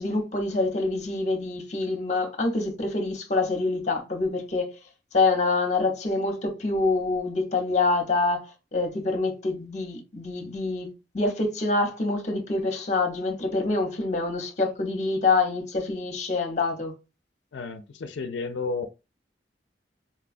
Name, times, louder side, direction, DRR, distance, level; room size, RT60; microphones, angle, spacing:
voice 1, 0.0-4.7 5.1-16.9, left 3 dB, 40° left, 0.8 m, -26 dB
voice 2, 17.5-18.9, left 4 dB, 90° left, 0.4 m, -32 dB
4.2 x 2.3 x 2.5 m
head